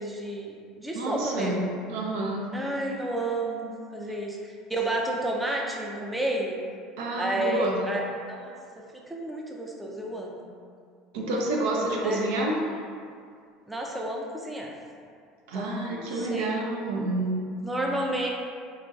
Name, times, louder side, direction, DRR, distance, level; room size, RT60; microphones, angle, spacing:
voice 1, 0.0-1.7 2.5-6.6 7.2-8.0 8.3-8.6 8.9-10.5 12.0-12.2 13.7-14.7 15.5-16.5 17.6-18.3, right 1 dB, 10° right, -1 dB, 0.4 m, -31 dB
voice 2, 0.9-2.5 7.0-7.8 11.1-12.6 15.5-17.4, right 2 dB, 75° right, -2 dB, 0.4 m, -28 dB
3.0 x 2.4 x 2.4 m, 2.2 s
hypercardioid pair, 85°, 0 cm